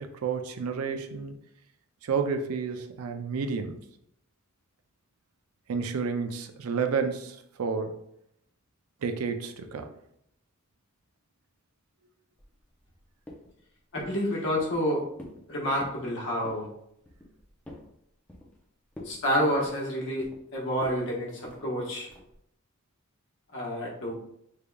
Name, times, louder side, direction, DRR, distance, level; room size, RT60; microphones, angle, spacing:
voice 1, 0.0-1.3 2.0-3.8 5.7-8.0 9.0-9.9, right 5 dB, 80° right, 0.4 m, -30 dB
sound 1, 12.4-13.0 13.3-13.6 14.0-14.2 14.6-14.9 15.2-15.5 15.7-16.0 16.4-16.7 17.1-17.9 18.3-18.6 18.9-19.2 19.5-20.4 20.8-21.0 21.4-21.6 22.1-22.4, left 1 dB, 5° left, 0.5 m, -45 dB
voice 2, 13.9-15.0 15.5-16.7 19.0-22.1 23.5-24.1, equal, 60° left, 1.1 m, -29 dB
3.5 x 3.4 x 2.2 m
head